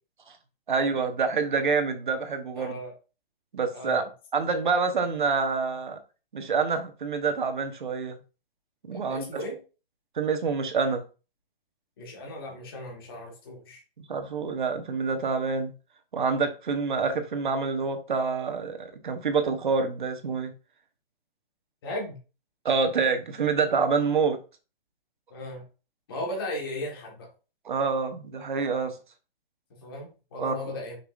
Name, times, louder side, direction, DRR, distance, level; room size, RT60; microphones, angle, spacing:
voice 1, 0.7-2.8 3.5-4.0 4.3-6.0 6.3-8.2 8.9-9.4 10.1-11.0 14.0-15.7 16.1-20.5 22.6-24.4 27.6-29.0 30.4-30.7, right 5 dB, 55° right, 1.3 m, -27 dB
voice 2, 2.6-2.9 3.7-4.1 8.9-9.6 12.0-13.8 21.8-22.2 25.3-25.6 26.1-27.3 29.8-31.0, left 1 dB, 25° left, 1.8 m, -36 dB
6.6 x 6.0 x 2.7 m
hypercardioid pair, 180°, 30 cm